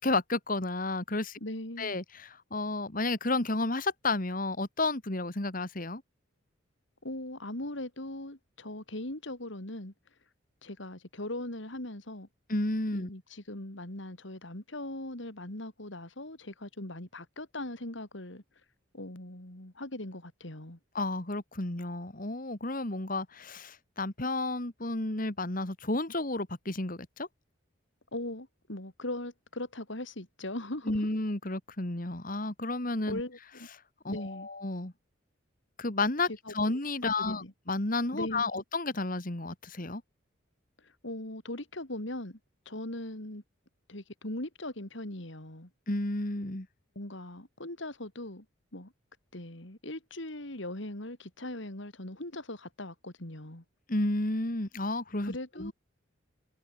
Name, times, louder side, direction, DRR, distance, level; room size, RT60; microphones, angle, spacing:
voice 1, 0.0-1.4 1.8-6.0 12.5-13.1 20.9-27.3 30.9-33.2 34.0-34.9 35.8-40.0 45.9-46.7 53.9-55.7, left 2 dB, 40° left, 2.0 m, -32 dB
voice 2, 1.4-1.9 7.0-9.9 10.6-12.3 12.9-18.4 18.9-20.8 28.1-30.9 33.1-33.7 34.1-34.5 36.5-36.6 37.0-37.5 38.1-38.6 41.0-42.4 42.6-43.4 43.9-45.7 46.9-48.4 48.7-48.9 49.3-53.6 55.2-55.7, left 1 dB, 65° left, 3.2 m, -40 dB
head